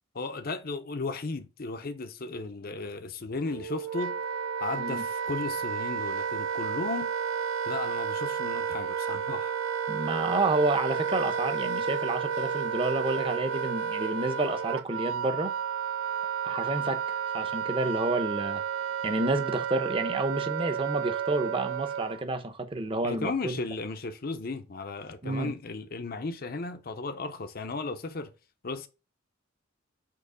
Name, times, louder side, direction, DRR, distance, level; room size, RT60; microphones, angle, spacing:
voice 1, 0.1-4.2 4.6-7.1 7.7-9.6 23.0-28.3 28.6-28.9, left 3 dB, 50° left, 0.7 m, -35 dB
Wind instrument woodwind instrument, 3.4-22.2, right 7 dB, 85° right, 0.4 m, -31 dB
voice 2, 9.9-15.5 16.4-18.6 19.0-23.6 25.2-25.5, right 2 dB, 25° right, 0.8 m, -30 dB
6.7 x 3.1 x 5.0 m
head